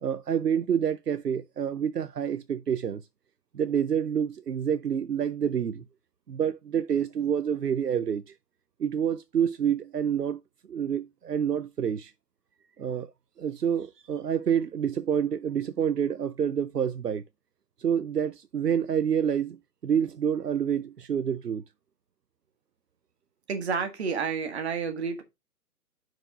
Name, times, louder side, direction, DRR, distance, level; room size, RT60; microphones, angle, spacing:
voice 1, 0.0-3.0 3.5-5.8 6.3-8.3 8.8-10.4 10.7-12.1 12.8-13.1 13.4-17.2 17.8-21.6, right 8 dB, 85° right, 0.6 m, -28 dB
voice 2, 23.5-25.2, right 5 dB, 45° right, 1.8 m, -30 dB
6.1 x 4.7 x 5.0 m
figure-of-eight pair, 135°, 47 cm